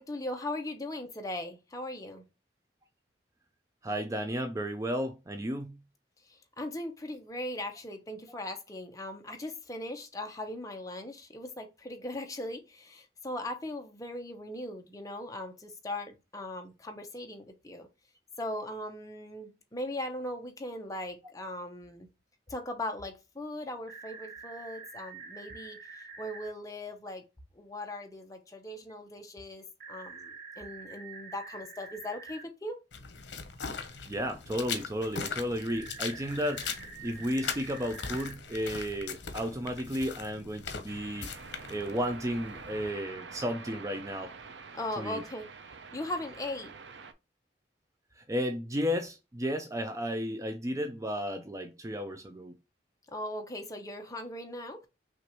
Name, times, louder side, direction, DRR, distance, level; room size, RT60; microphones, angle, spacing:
voice 1, 0.0-2.2 6.3-17.9 18.4-22.1 22.5-25.8 26.2-27.2 27.5-32.8 44.7-45.5 45.9-46.7 53.1-54.9, left 1 dB, 20° left, 0.9 m, -39 dB
voice 2, 3.8-5.8 34.1-36.7 37.0-41.3 41.7-44.3 45.0-45.2 48.2-52.5, equal, 20° right, 0.4 m, -33 dB
sound 1, 23.9-26.5 29.8-32.4 35.7-38.3, right 4 dB, 55° right, 1.1 m, -46 dB
sound 2, 32.9-42.9, left 6 dB, 85° left, 0.8 m, -40 dB
sound 3, 40.9-47.1, right 5 dB, 75° right, 0.5 m, -47 dB
6.0 x 2.5 x 3.0 m
head